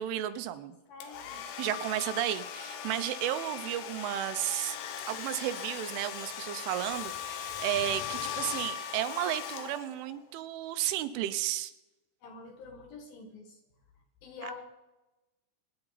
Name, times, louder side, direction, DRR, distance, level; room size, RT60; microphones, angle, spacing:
voice 1, 0.0-0.8 1.6-4.8 5.1-11.7, right 12 dB, 85° right, 11 dB, 3.2 m, -33 dB
voice 2, 0.9-1.4 12.2-13.6 14.2-14.6, left 3 dB, 60° left, 2 dB, 2.9 m, -46 dB
Domestic sounds home sounds, 1.0-10.2, left 9 dB, 90° left, 3.7 m, -39 dB
24.5 x 9.8 x 4.0 m, 1.0 s
omnidirectional pair, 5.5 m